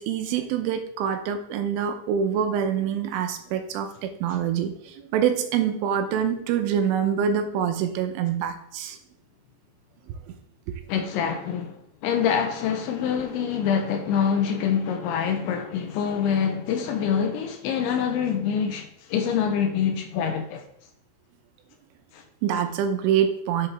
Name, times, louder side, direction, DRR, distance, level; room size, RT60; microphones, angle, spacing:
voice 1, 0.0-9.0 10.3-10.4 22.4-23.7, right 8 dB, 80° right, 3.2 m, -25 dB
voice 2, 10.9-11.8 12.0-20.6 22.1-22.2, left 7 dB, 80° left, 2.9 m, -25 dB
11.0 x 7.0 x 3.4 m
omnidirectional pair, 5.8 m